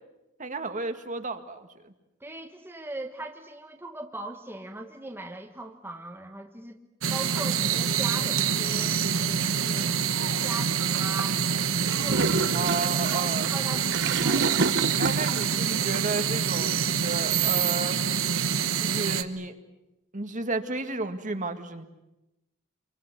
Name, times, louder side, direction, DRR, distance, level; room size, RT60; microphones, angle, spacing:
voice 1, 0.4-1.9 12.5-13.5 15.0-18.1 18.8-19.5 20.1-21.8, right 3 dB, 40° right, 7 dB, 1.9 m, -33 dB
voice 2, 2.2-6.8 7.1-11.4 12.0-14.7, right 2 dB, 10° right, 3 dB, 1.4 m, -40 dB
sound 1, 7.0-19.2, right 7 dB, 85° right, 1.3 m, -26 dB
Gurgling / Toilet flush, 11.9-15.6, right 3 dB, 60° right, 1.2 m, -29 dB
27.5 x 24.0 x 8.1 m, 0.94 s
head